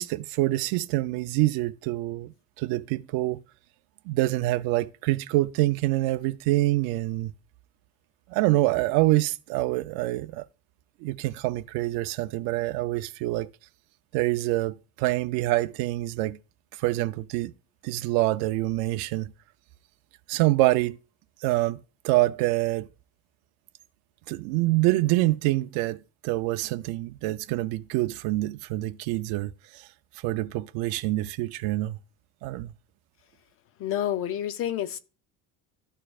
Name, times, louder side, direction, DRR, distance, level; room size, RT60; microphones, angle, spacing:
voice 1, 0.0-3.4 4.1-7.3 8.3-10.4 11.0-13.5 14.1-16.4 16.8-17.5 17.8-19.3 20.3-21.0 21.4-21.8 22.0-22.9 24.3-26.0 26.2-29.9 30.2-32.0 32.4-32.7, right 18 dB, 75° right, 0.5 m, -26 dB
voice 2, 33.8-35.0, left 11 dB, 35° left, 0.5 m, -29 dB
12.5 x 4.4 x 2.3 m
cardioid pair, 165°, 38 cm